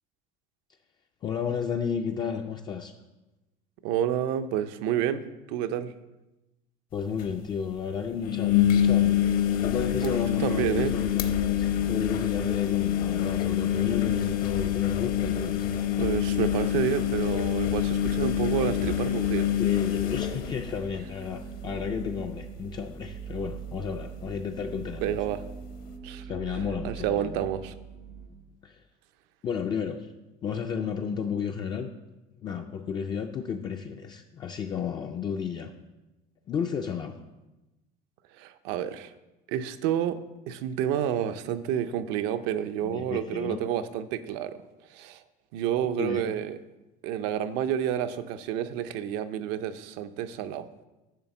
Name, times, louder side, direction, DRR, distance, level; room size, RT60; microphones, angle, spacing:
voice 1, 1.2-2.9 6.9-15.7 19.6-25.2 26.3-27.4 28.6-28.8 29.4-30.1 30.4-31.9 32.4-35.7 36.5-37.2 42.8-43.6 45.8-46.3, left 6 dB, 25° left, 4 dB, 0.3 m, -32 dB
voice 2, 3.8-5.2 5.5-5.9 10.0-10.1 10.4-11.0 16.0-19.5 25.0-25.4 26.0-26.3 26.8-27.7 38.4-39.1 39.5-40.2 40.5-44.6 44.9-45.2 45.5-46.6 47.0-50.7, right 10 dB, 70° right, 10 dB, 0.6 m, -29 dB
sound 1, 6.9-7.0 7.2-7.3 8.2-21.3 21.7-22.1 22.4-22.5 24.3-24.4, left 11 dB, 50° left, 0.8 m, -26 dB
sound 2, 8.5-28.3, right 5 dB, 90° right, 2.3 m, -43 dB
10.5 x 3.5 x 7.0 m, 1.0 s
cardioid pair, 160°, 19 cm